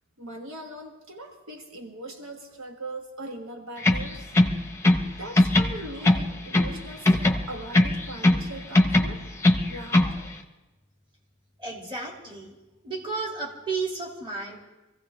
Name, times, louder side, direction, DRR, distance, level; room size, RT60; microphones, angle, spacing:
voice 1, 0.2-4.2 5.2-9.2 9.7-10.1, right 1 dB, 65° right, 2 dB, 1.4 m, -40 dB
sound 1, 3.8-5.1 5.4-6.8 7.1-8.5 8.7-10.2, left 1 dB, 10° left, 1.0 m, -20 dB
voice 2, 11.6-12.6 12.8-14.6, right 4 dB, 20° right, 0 dB, 2.3 m, -33 dB
24.5 x 15.5 x 3.3 m, 1.1 s
head